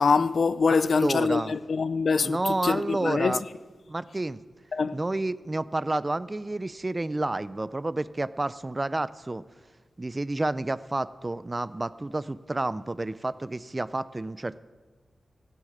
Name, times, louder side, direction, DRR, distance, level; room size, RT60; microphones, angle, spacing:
voice 1, 0.0-3.4 4.7-5.0, left 5 dB, 65° left, 0.4 m, -24 dB
voice 2, 0.8-1.5 2.2-3.4 3.9-4.4 4.9-9.4 10.0-14.6, right 2 dB, 25° right, 0.4 m, -30 dB
16.0 x 6.5 x 8.5 m
wide cardioid pair, 105°, 0 cm